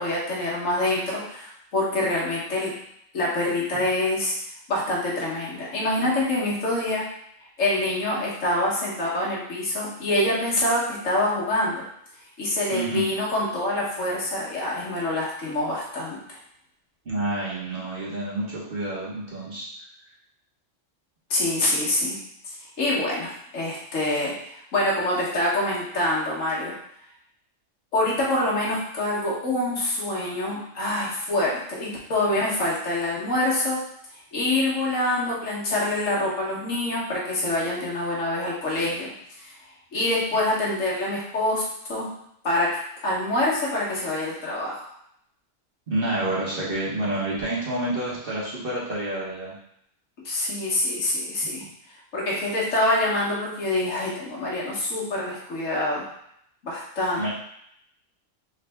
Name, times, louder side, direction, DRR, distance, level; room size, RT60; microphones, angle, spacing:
voice 1, 0.0-2.7 3.1-4.3 4.7-7.0 7.6-11.8 12.4-16.4 21.3-22.2 22.4-26.7 27.9-33.8 34.1-39.1 39.4-39.5 39.9-41.6 41.9-42.1 42.4-42.8 43.0-44.8 50.2-51.6 52.1-56.1 56.6-57.3, left 1 dB, 80° left, -5 dB, 1.6 m, -26 dB
voice 2, 12.7-13.0 17.0-19.7 45.9-49.5 51.6-51.7 57.2-57.3, right 1 dB, 50° right, -6 dB, 1.3 m, -28 dB
4.0 x 3.2 x 3.4 m, 0.73 s
omnidirectional pair, 1.3 m